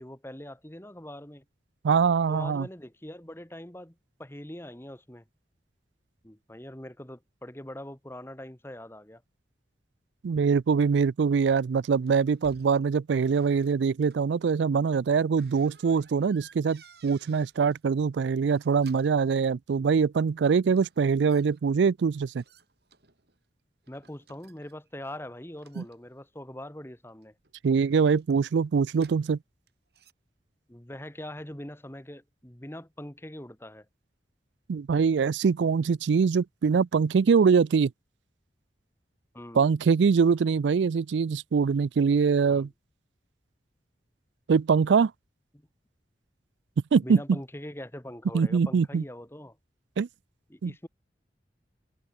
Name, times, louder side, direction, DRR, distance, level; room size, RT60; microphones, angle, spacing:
voice 1, 0.0-1.5 2.3-5.2 6.2-9.2 23.9-27.3 30.7-33.9 39.3-39.7 42.5-42.7 47.0-49.6 50.5-50.9, left 1 dB, 15° left, 1.7 m, -42 dB
voice 2, 1.8-2.7 10.2-22.4 25.8-25.9 27.6-29.4 34.7-37.9 39.5-42.7 44.5-45.1 46.9-47.4 48.3-49.0 50.0-50.1 50.6-50.7, right 5 dB, 80° right, 0.4 m, -23 dB
sound 1, 12.0-12.9 13.2-14.2 15.4-17.8 18.4-19.2 20.8-21.6 22.3-23.4 23.8-24.9 25.6-26.5 27.1-29.4 29.7-30.1, right 5 dB, 60° right, 4.1 m, -58 dB
head